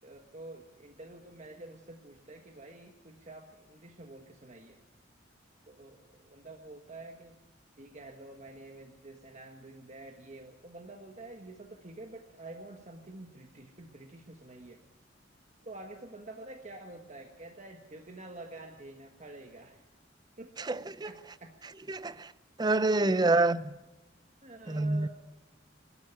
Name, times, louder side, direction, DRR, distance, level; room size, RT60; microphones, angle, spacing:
voice 1, 0.0-4.8 5.6-7.4 7.8-14.8 15.6-19.8 20.4-20.5 21.0-21.5 23.0-23.6 24.4-25.1, right 2 dB, 40° right, 1.5 m, -48 dB
voice 2, 20.6-21.1 21.9-22.3 22.6-23.6 24.7-25.1, right 2 dB, 20° right, 0.6 m, -27 dB
22.0 x 13.0 x 9.8 m
head